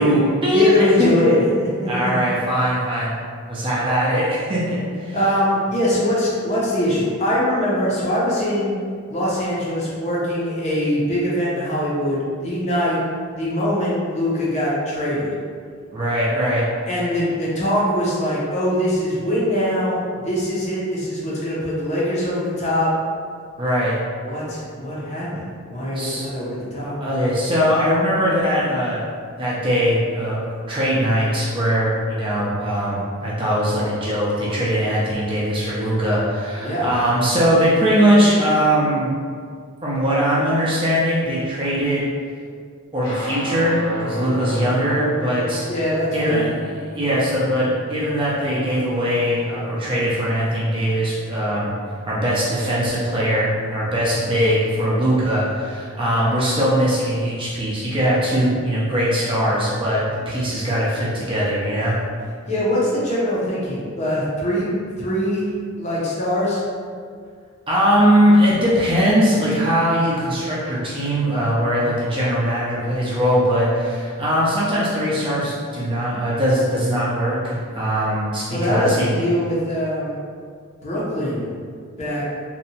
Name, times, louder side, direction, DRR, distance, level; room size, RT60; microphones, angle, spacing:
voice 1, 0.0-1.1 1.9-3.2 3.5-5.2 15.9-16.7 23.6-24.0 26.0-26.2 27.0-29.0 29.4-30.4 30.7-39.1 39.8-42.1 42.9-45.6 46.1-51.7 52.1-62.0 67.7-79.1, equal, 20° right, -7 dB, 0.4 m, -20 dB
voice 2, 0.5-1.9 5.1-8.8 9.1-13.0 13.3-15.3 16.9-22.9 24.2-27.0 36.6-36.8 45.7-46.5 62.5-64.7 65.0-65.5 65.8-66.6 78.5-80.2 80.8-81.5 82.0-82.2, left 1 dB, 30° left, -6 dB, 0.5 m, -22 dB
Guitar, 43.0-51.8, left 2 dB, 70° left, 0.8 m, -34 dB
2.7 x 2.1 x 2.7 m, 2.1 s
head